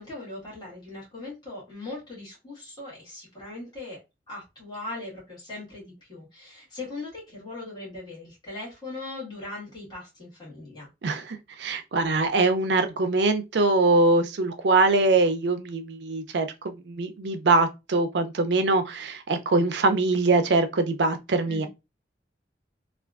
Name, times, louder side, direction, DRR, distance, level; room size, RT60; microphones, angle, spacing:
voice 1, 0.0-4.0 4.3-10.9 21.5-21.7, left 2 dB, 25° left, 1.7 m, -39 dB
voice 2, 11.0-21.7, right 3 dB, 80° right, 0.5 m, -23 dB
3.4 x 2.4 x 2.4 m
head